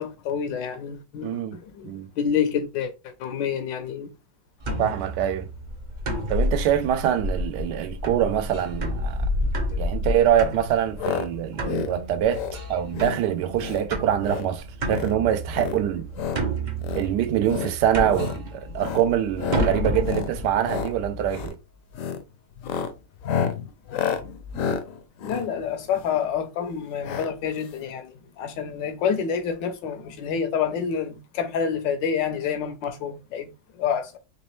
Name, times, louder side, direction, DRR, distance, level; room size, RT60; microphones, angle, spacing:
voice 1, 0.0-4.1 9.7-9.8 25.2-34.2, left 7 dB, 85° left, 1.5 m, -28 dB
voice 2, 1.2-1.6 1.8-2.1 4.8-5.5 6.3-9.2 9.8-12.4 12.7-16.1 16.9-21.6, right 10 dB, 75° right, 1.2 m, -24 dB
sound 1, 4.6-21.5, equal, 50° right, 0.5 m, -30 dB
sound 2, 11.0-11.3 11.5-11.9 12.3-12.6 12.9-13.2 13.6-13.8 14.2-14.5 14.8-15.1 15.5-16.4 16.8-17.1 17.4-17.7 18.1-18.4 18.8-19.1 19.4-19.7 20.0-20.3 20.6-20.9 21.3-21.5 21.9-22.2 22.6-26.2 27.0-27.3 27.6-27.7 27.8-27.9, left 7 dB, 65° left, 0.8 m, -30 dB
4.2 x 3.1 x 3.1 m
omnidirectional pair, 1.9 m